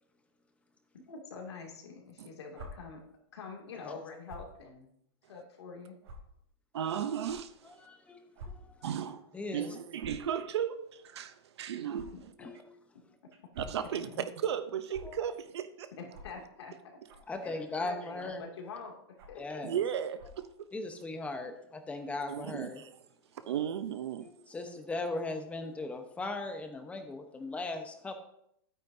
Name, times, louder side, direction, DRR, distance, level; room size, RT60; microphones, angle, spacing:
voice 1, 1.1-3.0 3.3-4.9 5.3-6.0 13.9-14.3 15.9-17.0 17.4-19.0 19.3-19.6, left 4 dB, 90° left, 2.5 m, -45 dB
sound 1, 2.5-2.7 4.2-4.5 5.2-5.3 6.0-6.2 7.2-7.3 8.3-8.5 8.8-9.0 9.9-10.2 11.9-12.1 13.3-13.8 14.9-15.0 16.1-16.3 17.1-17.3 18.2-18.4 19.2-19.4 20.1-20.4, right 2 dB, 65° right, 3.3 m, -47 dB
voice 2, 6.7-7.6 8.8-9.2 9.5-12.1 13.6-14.1 14.4-15.9 19.6-20.3 22.3-22.9 23.4-24.3, right 9 dB, 85° right, 0.7 m, -35 dB
voice 3, 7.6-8.8 9.3-9.7 12.4-12.6 15.0-15.3 17.3-18.4 19.3-19.8 20.7-22.8 23.4-23.5 24.2-28.1, left 2 dB, 10° left, 1.0 m, -38 dB
11.5 x 9.0 x 2.7 m
supercardioid pair, 150°, 14 cm